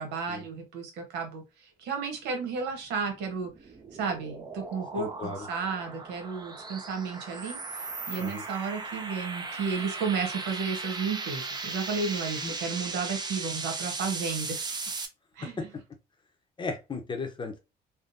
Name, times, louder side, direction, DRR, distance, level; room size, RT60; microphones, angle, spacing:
voice 1, 0.0-1.4 1.8-3.5 4.0-7.6 8.1-14.7 15.4-15.7, right 5 dB, 85° right, 1.2 m, -33 dB
sound 1, 3.0-15.1, right 3 dB, 25° right, 0.6 m, -37 dB
voice 2, 5.0-5.5 8.2-8.4 12.4-12.5 15.6-15.7 16.6-17.6, left 3 dB, 30° left, 0.8 m, -35 dB
3.6 x 2.2 x 2.6 m
cardioid pair, 110°, 17 cm